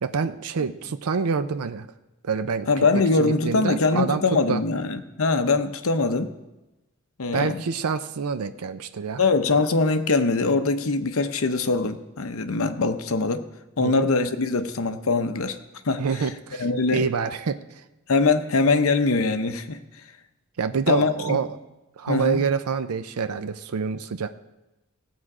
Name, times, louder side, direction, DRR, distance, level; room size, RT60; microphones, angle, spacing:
voice 1, 0.0-1.9 2.2-4.2 4.5-4.6 7.3-9.2 13.8-14.1 16.0-16.7 16.9-17.8 20.6-21.5 22.0-24.3, right 5 dB, 85° right, 10 dB, 0.5 m, -27 dB
voice 2, 2.7-6.3 7.2-7.6 9.2-13.5 13.8-15.6 15.8-16.0 16.6-17.1 18.1-19.8 20.9-21.4 22.1-22.4, left 3 dB, 75° left, 9 dB, 0.8 m, -22 dB
17.0 x 7.7 x 4.9 m, 1.0 s
head